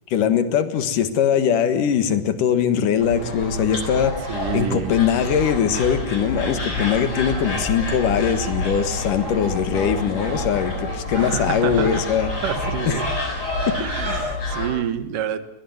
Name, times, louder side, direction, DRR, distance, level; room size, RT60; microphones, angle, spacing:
voice 1, 0.1-4.2 4.5-12.3 12.8-13.0 13.7-14.4, left 8 dB, 80° left, 11 dB, 3.1 m, -21 dB
sound 1, 3.0-14.7, left 1 dB, 30° left, 7.5 m, -28 dB
voice 2, 4.3-5.0 11.2-12.0 12.4-13.1 13.7-15.4, right 9 dB, 85° right, 11 dB, 3.0 m, -28 dB
22.5 x 19.5 x 9.4 m, 0.85 s
omnidirectional pair, 3.7 m